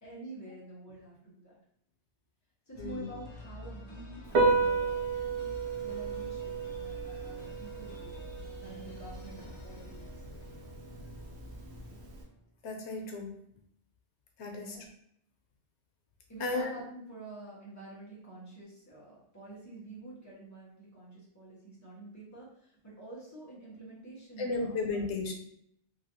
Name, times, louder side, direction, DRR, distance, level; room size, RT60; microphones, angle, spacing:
voice 1, 0.0-1.6 2.7-5.1 5.8-8.2 8.6-10.0 14.5-14.9 16.3-25.0, right 2 dB, 15° left, -7 dB, 1.1 m, -48 dB
sound 1, 2.7-12.6, left 2 dB, 45° left, 0.6 m, -49 dB
Piano, 4.2-12.2, right 4 dB, 75° right, 0.9 m, -33 dB
voice 2, 12.6-13.3 14.4-14.8 16.4-16.7 24.4-25.3, left 3 dB, 85° left, 2 dB, 0.9 m, -34 dB
3.2 x 2.7 x 2.6 m, 0.71 s
omnidirectional pair, 1.1 m